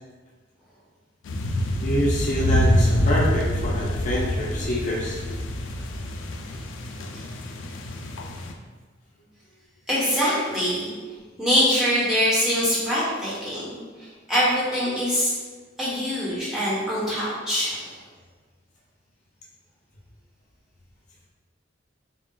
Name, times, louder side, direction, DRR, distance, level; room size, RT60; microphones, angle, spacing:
sound 1, 1.3-8.5, left 1 dB, 85° left, 0.4 m, -26 dB
voice 1, 1.8-5.2, equal, 40° left, -5 dB, 0.7 m, -26 dB
voice 2, 9.9-10.9 11.4-15.3 15.8-17.9, equal, 5° right, -10 dB, 1.2 m, -24 dB
4.1 x 2.3 x 3.7 m, 1.4 s
head